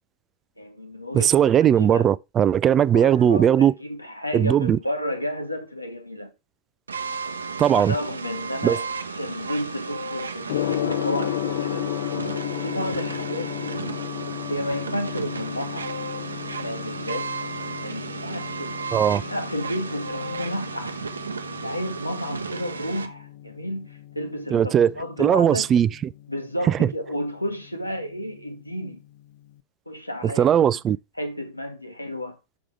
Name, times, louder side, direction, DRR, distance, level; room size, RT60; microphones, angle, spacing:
voice 1, 0.6-2.1 2.9-6.3 7.7-11.9 12.3-13.9 14.5-15.9 16.6-17.3 17.7-18.8 19.3-21.0 21.6-25.7 26.3-29.0 29.9-30.8 31.2-32.4, equal, 85° left, 1.4 m, -32 dB
voice 2, 1.1-3.7 4.3-4.8 7.6-7.9 8.6-8.8 18.9-19.2 24.5-24.9 25.2-25.9 30.4-31.0, right 9 dB, 25° right, 0.3 m, -18 dB
sound 1, 6.9-23.1, right 4 dB, 75° right, 0.7 m, -34 dB
Gong, 10.5-29.5, left 13 dB, 55° left, 0.3 m, -34 dB
6.1 x 6.1 x 4.8 m
figure-of-eight pair, 90°, 0 cm